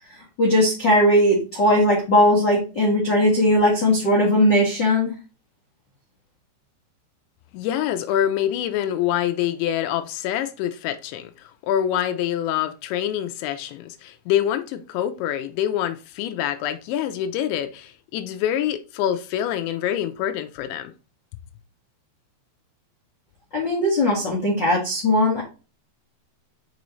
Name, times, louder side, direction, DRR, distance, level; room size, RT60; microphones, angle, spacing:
voice 1, 0.4-5.1 23.5-25.4, left 1 dB, 65° left, 1.0 m, -19 dB
voice 2, 7.5-11.3 11.6-20.9, left 11 dB, 80° left, 2.8 m, -25 dB
6.8 x 5.3 x 3.1 m
omnidirectional pair, 5.4 m